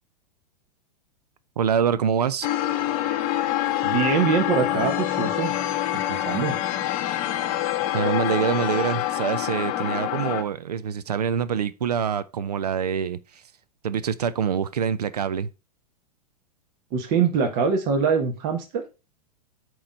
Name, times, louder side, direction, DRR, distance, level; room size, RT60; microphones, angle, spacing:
voice 1, 1.6-2.5 7.9-13.4 13.8-15.5, right 7 dB, 75° right, 0.5 m, -25 dB
sound 1, 2.4-10.4, left 13 dB, 40° left, 0.9 m, -26 dB
voice 2, 3.8-5.5 5.9-6.6 16.9-18.8, right 6 dB, 45° right, 1.3 m, -24 dB
8.6 x 3.2 x 5.2 m
figure-of-eight pair, 100°, 20 cm